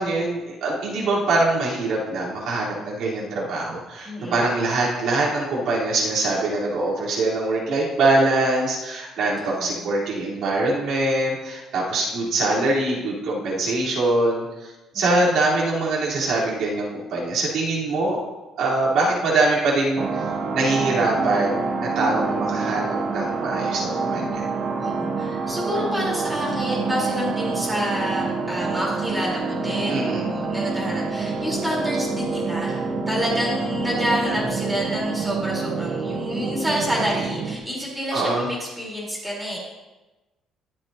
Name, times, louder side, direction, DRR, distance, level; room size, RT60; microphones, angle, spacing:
voice 1, 0.0-14.5 14.9-18.2 18.6-20.3 20.5-24.4 29.9-30.2 38.1-38.4, right 2 dB, 65° right, -7 dB, 4.1 m, -23 dB
voice 2, 4.0-4.5 9.4-9.9 14.9-15.3 24.8-39.6, equal, 5° right, -5 dB, 4.1 m, -28 dB
sound 1, 20.0-37.6, right 4 dB, 40° right, 1.0 m, -27 dB
22.0 x 7.8 x 2.9 m, 1.1 s
cardioid pair, 145°, 0 cm